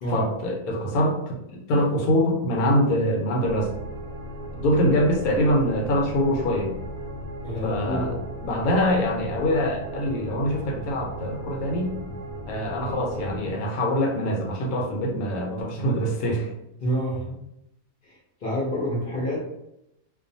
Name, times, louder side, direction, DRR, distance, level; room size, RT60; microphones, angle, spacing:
voice 1, 0.1-3.7 4.5-6.7 7.6-8.1 8.4-11.9 12.5-16.5, equal, 90° left, 1 dB, 1.1 m, -24 dB
sound 1, 3.4-13.5, right 1 dB, 85° right, 0.4 m, -37 dB
voice 2, 7.4-8.2 16.8-17.5 18.0-19.5, equal, 50° left, -5 dB, 0.7 m, -28 dB
2.4 x 2.2 x 2.6 m, 0.83 s
omnidirectional pair, 1.5 m